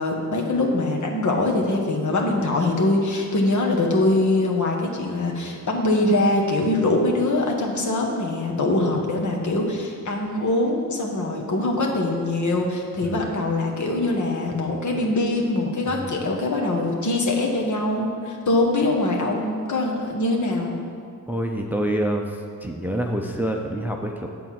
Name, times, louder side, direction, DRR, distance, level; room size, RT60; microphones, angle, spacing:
voice 1, 0.0-20.7, left 2 dB, 55° left, 0 dB, 1.4 m, -23 dB
voice 2, 15.9-16.2 21.3-24.3, right 1 dB, 5° right, 2 dB, 0.6 m, -27 dB
8.9 x 4.5 x 7.5 m, 2.3 s
wide cardioid pair, 100°, 34 cm